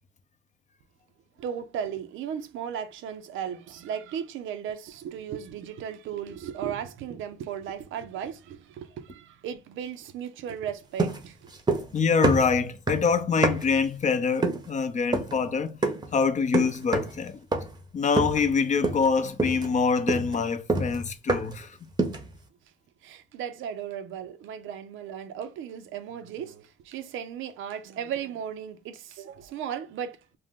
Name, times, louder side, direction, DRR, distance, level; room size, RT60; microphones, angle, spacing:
voice 1, 1.4-11.5 23.0-30.4, right 8 dB, 80° right, 0.5 m, -36 dB
sound 1, 11.0-12.0 12.2-13.8 14.4-14.7 15.1-15.4 15.8-16.1 16.5-17.2 17.5-17.8 18.2-18.5 18.8-19.1 19.4-21.6 22.0-22.3, right 2 dB, 20° right, 0.7 m, -27 dB
voice 2, 11.9-15.8 16.1-17.4 17.9-21.7, left 5 dB, 40° left, 0.5 m, -25 dB
2.5 x 2.1 x 3.5 m
cardioid pair, 90°, 20 cm